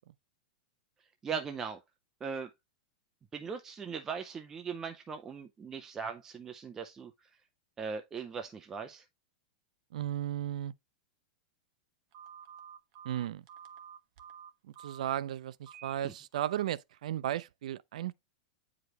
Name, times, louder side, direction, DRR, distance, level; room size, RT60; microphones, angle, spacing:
voice 1, 1.2-1.8 2.2-2.5 3.3-7.1 7.8-9.0 16.0-16.1, right 6 dB, 10° right, 0.5 m, -39 dB
voice 2, 9.9-10.7 13.0-13.4 14.8-18.1, right 11 dB, 70° right, 0.4 m, -35 dB
Telephone, 12.1-15.1 15.6-15.9 16.3-16.6, right 8 dB, 40° right, 1.2 m, -50 dB
9.3 x 4.9 x 2.9 m
supercardioid pair, 175°, 4 cm